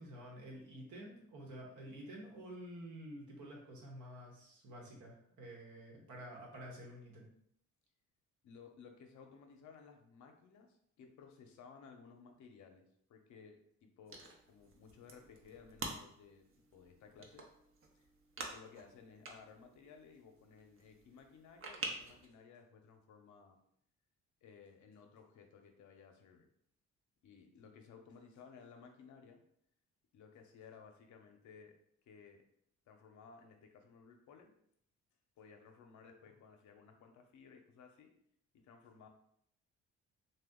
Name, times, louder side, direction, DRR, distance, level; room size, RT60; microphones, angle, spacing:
voice 1, 0.0-7.3, right 1 dB, 75° right, -1 dB, 1.0 m, -50 dB
voice 2, 8.4-16.5 16.7-17.5 17.9-18.1 18.4-23.6 24.4-26.5 27.2-29.4 30.1-31.7 32.1-32.4 32.9-34.5 35.4-38.1 38.5-39.1, left 5 dB, 70° left, 4 dB, 0.6 m, -58 dB
sound 1, 14.1-22.3, right 3 dB, 45° right, 0.7 m, -49 dB
2.8 x 2.2 x 3.6 m, 0.70 s
cardioid pair, 90°, 30 cm